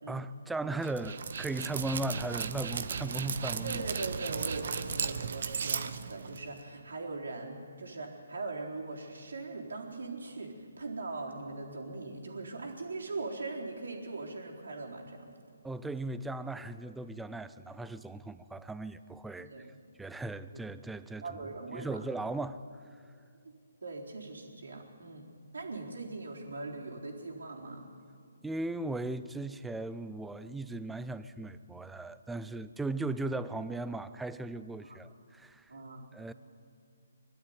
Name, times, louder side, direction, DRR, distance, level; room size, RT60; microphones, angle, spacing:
voice 1, 0.1-3.8 15.6-19.5 20.0-21.2 21.7-22.6 28.4-35.6 36.1-36.3, right 2 dB, 5° right, 13 dB, 0.5 m, -37 dB
Dog, 0.8-6.6, right 6 dB, 60° right, 1.0 m, -36 dB
voice 2, 3.6-15.3 19.4-19.6 20.5-20.6 21.2-22.0 23.8-25.3 25.5-27.9 34.8-35.0 35.7-36.0, right 3 dB, 75° right, -1 dB, 4.0 m, -40 dB
23.0 x 12.5 x 9.5 m, 2.3 s
figure-of-eight pair, 145°, 0 cm